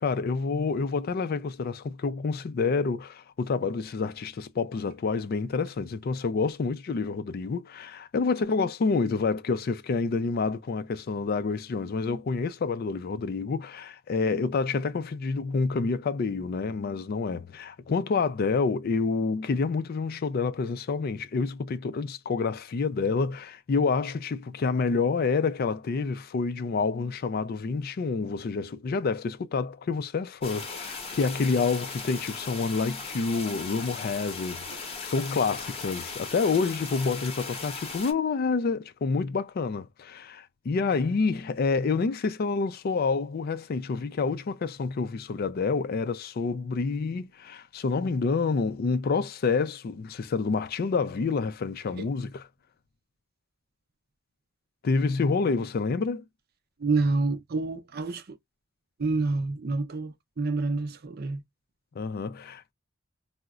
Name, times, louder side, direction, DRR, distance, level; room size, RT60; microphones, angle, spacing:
voice 1, 0.0-52.4 54.8-56.2 62.0-62.7, left 4 dB, 50° left, 0.4 m, -28 dB
sound 1, 30.4-38.1, left 4 dB, 30° left, 0.8 m, -38 dB
voice 2, 56.8-58.4 59.0-61.4, right 3 dB, 50° right, 0.6 m, -28 dB
3.8 x 2.1 x 2.3 m
head